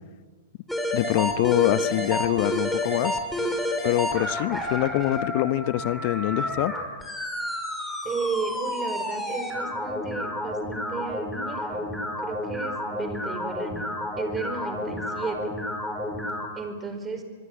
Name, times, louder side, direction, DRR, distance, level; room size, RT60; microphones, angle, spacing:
sound 1, 0.7-16.5, left 1 dB, ahead, 5.9 m, -30 dB
voice 1, 0.9-3.2 3.8-6.7, left 16 dB, 50° left, 14 dB, 1.1 m, -24 dB
voice 2, 1.7-2.1 8.0-11.8 12.2-13.9 14.2-15.5 16.5-17.2, right 4 dB, 20° right, 8 dB, 4.8 m, -34 dB
25.5 x 21.5 x 8.4 m, 1.5 s
hypercardioid pair, 110°, 0 cm